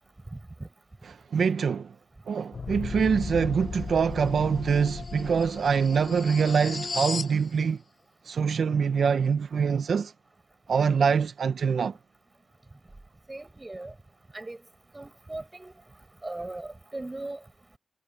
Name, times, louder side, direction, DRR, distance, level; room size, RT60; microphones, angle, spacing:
voice 1, 0.3-0.7 13.3-13.9 14.3-14.6 14.9-15.7 16.2-17.4, right 2 dB, 20° right, 5.4 m, -38 dB
voice 2, 1.3-1.9 2.3-7.8 8.2-10.1 10.7-12.0, right 6 dB, 65° right, 0.6 m, -24 dB
sound 1, 2.5-7.4, left 4 dB, 45° left, 0.6 m, -35 dB
wide cardioid pair, 120°, 0 cm